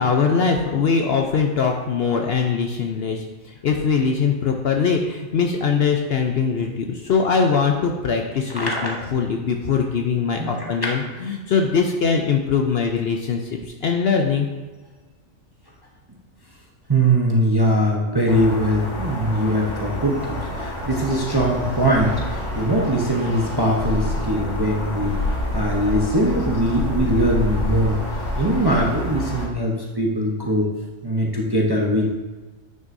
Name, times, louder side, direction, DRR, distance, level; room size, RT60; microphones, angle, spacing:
voice 1, 0.0-14.5, left 5 dB, 60° left, 3 dB, 0.7 m, -22 dB
voice 2, 8.5-9.0 10.4-11.0 16.9-30.7 31.0-32.1, right 1 dB, 25° right, -2 dB, 0.6 m, -21 dB
sound 1, 18.3-29.5, left 1 dB, 35° left, 1.6 m, -28 dB
9.3 x 6.1 x 2.6 m, 1.3 s
omnidirectional pair, 1.4 m